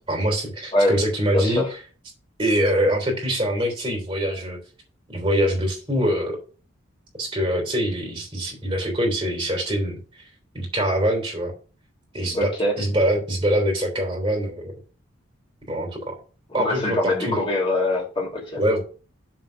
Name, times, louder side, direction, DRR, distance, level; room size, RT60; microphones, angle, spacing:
voice 1, 0.1-1.7 2.4-4.6 5.1-6.4 7.2-10.2 10.5-11.5 12.1-12.5 12.8-14.7 15.7-16.2 16.5-17.4 18.6-18.8, equal, 25° right, 1 dB, 3.3 m, -24 dB
voice 2, 1.3-1.7 12.3-12.8 16.5-18.6, left 1 dB, 25° left, -2 dB, 2.7 m, -23 dB
7.6 x 4.1 x 6.5 m, 0.38 s
head